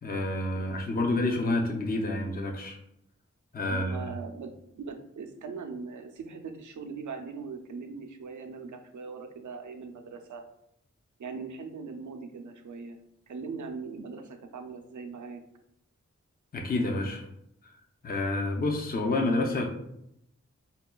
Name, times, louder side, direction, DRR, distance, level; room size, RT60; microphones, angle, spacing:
voice 1, 0.0-2.8 3.5-4.0 16.5-17.3 17.6-17.8 18.0-19.7, left 2 dB, 30° left, 2 dB, 0.5 m, -28 dB
voice 2, 0.5-0.9 3.7-10.4 11.2-13.0 13.3-15.4, right 4 dB, 80° right, 6 dB, 0.5 m, -40 dB
5.2 x 2.3 x 2.2 m, 0.79 s
wide cardioid pair, 80°, 30 cm